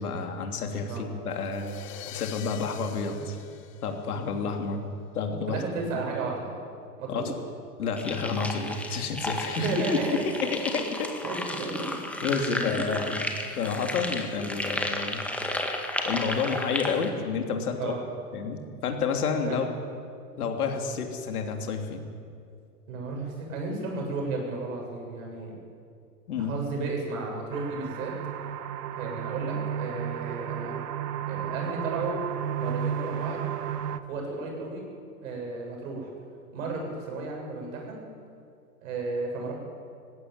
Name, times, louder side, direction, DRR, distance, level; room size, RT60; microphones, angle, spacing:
voice 1, 0.0-1.8 2.1-3.4 3.8-4.8 5.1-5.6 5.9-6.0 7.1-7.3 7.8-10.0 10.4-11.1 12.2-13.3 13.6-15.2 16.0-17.9 18.3-19.7 20.4-22.0 26.3-26.6, left 5 dB, 65° left, 4 dB, 3.2 m, -30 dB
sound 1, 1.3-4.6, left 12 dB, 25° left, 0.9 m, -45 dB
voice 2, 5.5-6.5 7.0-7.3 9.5-10.8 11.2-11.9 12.5-12.8 17.8-18.0 19.4-19.6 22.9-25.5 26.5-28.1 28.9-30.7 31.3-32.2 32.6-33.4 34.1-34.8 35.2-36.1 36.5-38.0 38.8-39.6, right 3 dB, 55° right, 1 dB, 7.6 m, -33 dB
sound 2, 8.0-17.1, left 1 dB, 5° left, 1.9 m, -33 dB
sound 3, 27.5-34.0, right 9 dB, 70° right, 1.2 m, -33 dB
19.5 x 15.5 x 9.4 m, 2.4 s
hypercardioid pair, 115°, 48 cm